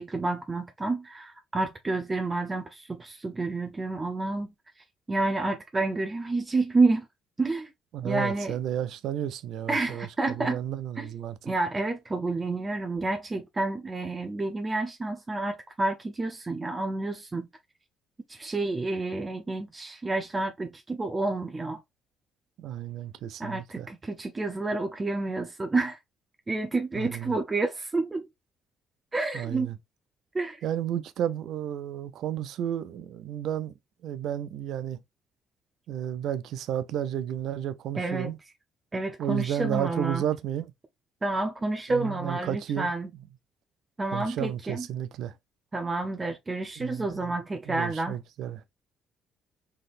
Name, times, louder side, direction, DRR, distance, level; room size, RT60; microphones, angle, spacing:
voice 1, 0.0-4.5 5.1-7.1 7.4-7.7 8.0-8.5 9.7-10.6 11.0-11.1 11.4-17.5 18.3-21.8 23.4-26.0 26.5-28.3 29.1-29.7 30.3-30.6 38.0-38.3 38.9-40.2 41.2-43.1 44.0-44.8 45.7-48.2, right 3 dB, 25° right, 0.7 m, -29 dB
voice 2, 7.9-11.4 22.6-23.9 26.9-27.4 29.3-29.8 30.6-33.7 34.0-35.0 35.9-38.4 39.2-40.7 41.9-42.9 44.1-45.3 46.8-47.3 47.7-48.7, right 10 dB, 65° right, 0.4 m, -32 dB
3.8 x 3.4 x 2.5 m
hypercardioid pair, 55°, 0 cm